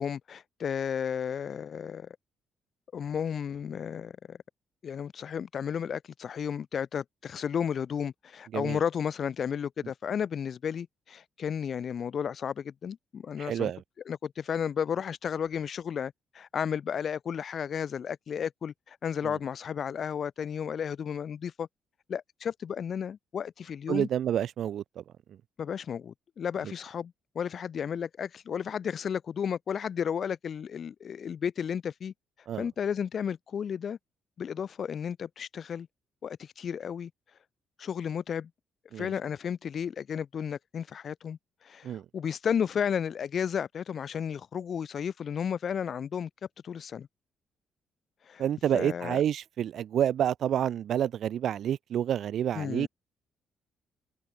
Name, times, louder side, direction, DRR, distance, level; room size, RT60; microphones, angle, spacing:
voice 1, 0.0-2.1 2.9-4.4 4.8-13.7 14.1-21.7 22.1-24.1 25.6-32.1 32.6-34.0 34.4-35.9 36.2-37.1 37.8-38.5 39.0-46.3 46.6-47.1 48.3-48.4 48.7-49.2 52.5-52.9, left 7 dB, 55° left, 2.2 m, -33 dB
voice 2, 13.4-13.8 19.2-19.4 23.9-25.0 32.5-32.7 38.9-39.1 41.8-42.0 48.4-52.9, right 10 dB, 65° right, 0.4 m, -29 dB
cardioid pair, 90°, 0 cm